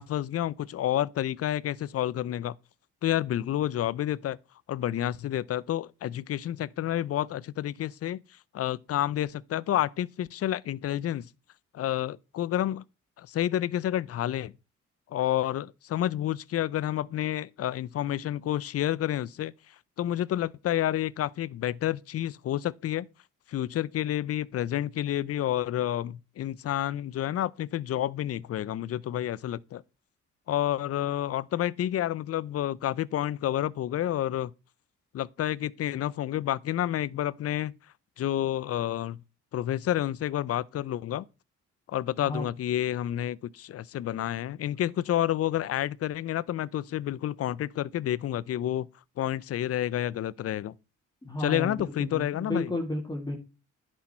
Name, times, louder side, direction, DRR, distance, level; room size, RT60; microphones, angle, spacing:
voice 1, 0.0-2.5 3.0-4.4 4.7-8.2 8.5-11.3 11.7-12.8 13.2-14.5 15.1-19.5 20.0-23.1 23.5-29.8 30.5-34.5 35.1-37.8 38.2-39.2 39.5-41.2 41.9-48.9 49.2-50.7 51.4-52.7, left 12 dB, 50° left, 0.5 m, -29 dB
voice 2, 51.2-53.4, left 1 dB, 15° left, 2.2 m, -32 dB
10.5 x 6.2 x 4.3 m
cardioid pair, 90°, 30 cm